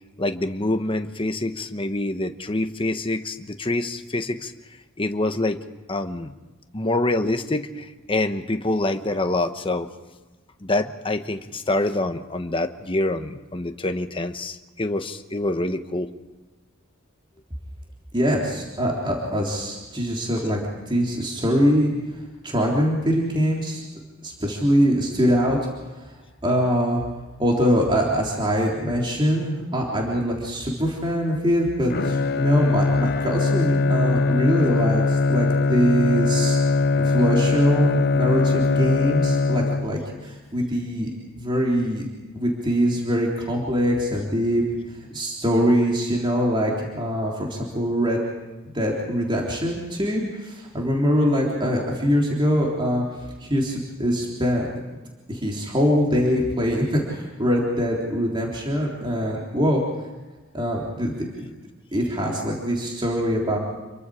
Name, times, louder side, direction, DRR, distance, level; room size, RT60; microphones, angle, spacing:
voice 1, 0.2-4.5 5.0-5.6 5.9-6.3 6.7-9.9 10.6-16.1, left 2 dB, 25° left, 7 dB, 1.1 m, -26 dB
voice 2, 18.1-20.6 20.9-21.9 22.4-23.8 24.2-25.6 26.4-27.0 27.4-36.6 37.0-41.1 41.4-42.1 42.3-44.6 45.1-48.2 48.6-53.0 53.4-54.7 55.3-59.8 60.5-61.5 61.9-63.6, equal, 25° right, -2 dB, 3.5 m, -23 dB
Bowed string instrument, 31.9-40.2, left 3 dB, 50° left, 0.6 m, -21 dB
28.0 x 23.0 x 5.0 m, 1.2 s
head